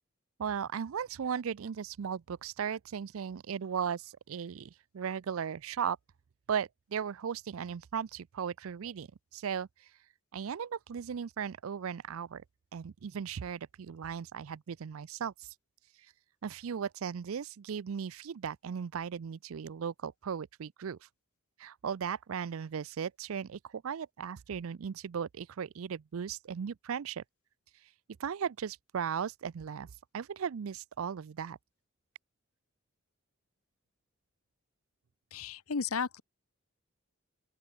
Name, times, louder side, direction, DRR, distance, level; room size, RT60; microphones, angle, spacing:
voice 1, 0.4-6.0 6.5-9.7 10.3-12.4 12.7-15.5 16.4-21.0 21.6-27.2 28.2-31.6, right 7 dB, 75° right, 0.4 m, -37 dB
voice 2, 35.3-36.2, left 5 dB, 85° left, 0.8 m, -34 dB
open air
head